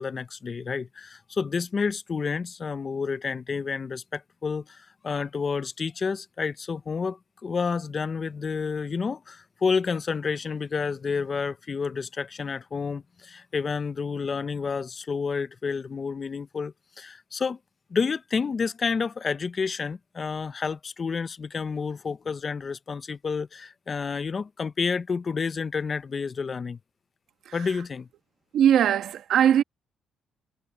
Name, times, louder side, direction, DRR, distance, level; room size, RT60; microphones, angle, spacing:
voice 1, 0.0-17.6 17.9-26.8 27.5-28.1, left 5 dB, 40° left, 0.8 m, -30 dB
voice 2, 28.5-29.6, right 9 dB, 75° right, 1.2 m, -20 dB
cardioid pair, 90°, 0 cm